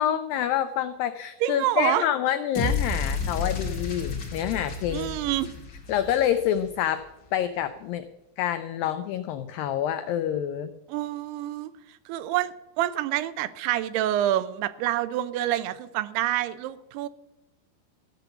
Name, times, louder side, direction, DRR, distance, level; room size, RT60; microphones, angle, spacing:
voice 1, 0.0-5.1 5.9-7.0 7.3-8.1 8.4-10.7, left 10 dB, 90° left, 10 dB, 2.0 m, -27 dB
voice 2, 1.4-2.1 4.9-5.5 10.9-11.7 12.1-17.1, right 13 dB, 85° right, 14 dB, 2.6 m, -27 dB
sound 1, 2.5-6.8, left 4 dB, 40° left, 2.0 m, -31 dB
14.5 x 6.8 x 6.9 m, 0.98 s
omnidirectional pair, 4.7 m